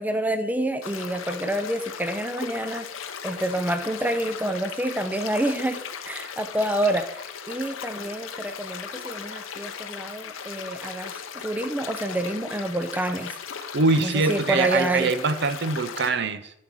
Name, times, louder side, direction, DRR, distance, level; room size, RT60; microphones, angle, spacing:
voice 1, 0.0-2.9 3.2-13.4 14.0-15.1, right 1 dB, 10° right, 0.5 m, -28 dB
sound 1, 0.8-16.1, left 7 dB, 85° left, 0.9 m, -37 dB
voice 2, 13.7-16.5, right 3 dB, 60° right, 0.7 m, -23 dB
11.5 x 5.6 x 6.2 m
head